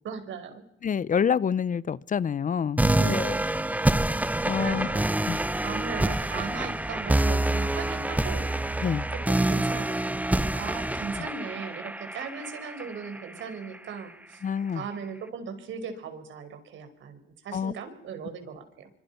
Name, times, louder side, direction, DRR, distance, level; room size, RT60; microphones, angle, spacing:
voice 1, 0.0-0.6 3.0-3.5 4.6-5.0 5.6-8.4 9.1-14.4 14.7-18.9, right 6 dB, 75° right, 8 dB, 5.2 m, -38 dB
voice 2, 0.8-3.3 4.5-4.9 5.3-5.4 8.8-9.1 11.2-11.3 14.4-14.8 17.5-17.7, left 7 dB, 40° left, 20 dB, 0.8 m, -27 dB
sound 1, 2.8-13.8, right 1 dB, 5° right, 1.0 m, -27 dB
26.0 x 25.0 x 5.9 m, 0.79 s
cardioid pair, 90°, 20 cm